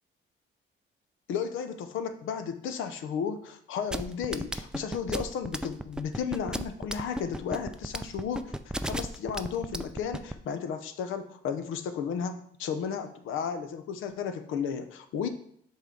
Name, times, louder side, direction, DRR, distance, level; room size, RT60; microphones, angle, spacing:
voice 1, 1.3-8.6 8.8-15.3, left 7 dB, 85° left, 9 dB, 0.7 m, -33 dB
sound 1, 3.9-10.3, right 1 dB, 5° right, 0.4 m, -33 dB
7.0 x 4.4 x 3.8 m, 0.67 s
cardioid pair, 90°, 20 cm